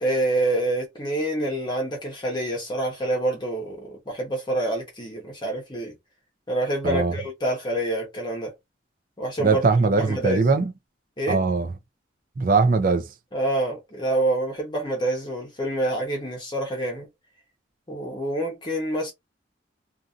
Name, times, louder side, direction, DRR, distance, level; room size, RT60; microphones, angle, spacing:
voice 1, 0.0-5.9 6.5-8.5 9.2-9.6 9.9-10.4 11.2-11.4 13.3-17.1 17.9-19.1, right 1 dB, 25° left, 0.9 m, -27 dB
voice 2, 9.4-10.7 11.3-11.7 12.4-13.1, right 4 dB, 45° right, 0.5 m, -21 dB
2.6 x 2.6 x 2.4 m
head